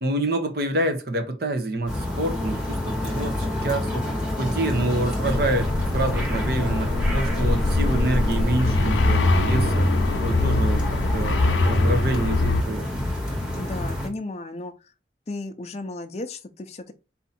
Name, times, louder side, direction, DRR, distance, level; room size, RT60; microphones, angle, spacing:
voice 1, 0.0-3.4 3.6-4.1 4.4-9.9 10.2-10.8 11.1-12.9, right 1 dB, 55° right, 0.9 m, -27 dB
sound 1, 1.9-14.1, left 1 dB, 5° right, 1.2 m, -28 dB
sound 2, 5.2-12.6, left 2 dB, 85° left, 0.6 m, -23 dB
voice 2, 13.5-14.9 15.3-16.9, left 2 dB, 35° left, 0.5 m, -34 dB
4.2 x 2.7 x 4.1 m
head